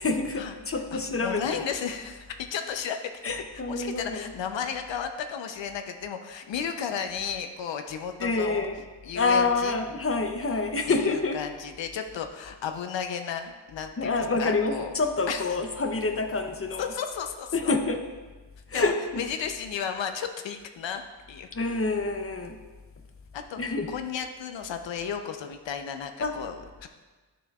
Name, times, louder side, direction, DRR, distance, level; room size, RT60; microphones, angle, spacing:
voice 1, 0.0-1.6 3.2-4.2 8.2-8.8 9.1-11.4 14.0-16.9 17.5-18.0 18.7-19.2 21.5-22.6 23.6-23.9 26.2-26.4, left 3 dB, 30° left, 5 dB, 0.6 m, -27 dB
voice 2, 0.9-3.3 3.7-8.7 9.0-9.7 10.9-14.1 14.4-14.9 15.3-15.5 16.8-17.7 18.7-21.0 21.3-21.5 23.3-26.9, left 7 dB, 70° left, 6 dB, 0.7 m, -34 dB
9.1 x 6.2 x 2.3 m, 1.3 s
cardioid pair, 70°, 45 cm